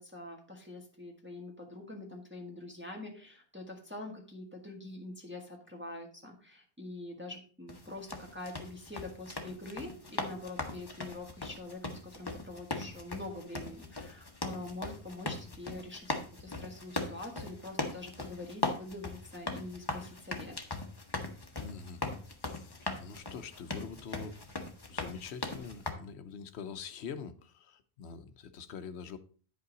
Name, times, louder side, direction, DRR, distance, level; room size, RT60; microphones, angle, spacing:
voice 1, 0.0-20.5, left 2 dB, 10° right, 1.5 m, -45 dB
sound 1, 7.7-25.9, left 2 dB, 25° left, 1.0 m, -39 dB
voice 2, 21.6-22.0 22.4-24.5 24.9-29.2, left 6 dB, 75° left, 1.0 m, -45 dB
10.5 x 5.4 x 3.9 m
omnidirectional pair, 1.1 m